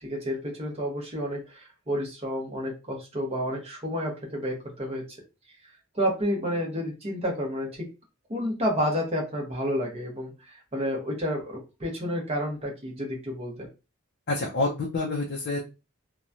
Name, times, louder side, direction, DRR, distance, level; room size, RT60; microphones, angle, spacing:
voice 1, 0.0-5.0 5.9-7.9 8.3-13.7, equal, 30° right, -1 dB, 1.0 m, -30 dB
voice 2, 14.3-15.6, left 2 dB, 50° left, -2 dB, 0.5 m, -27 dB
3.0 x 2.2 x 2.5 m, 0.28 s
head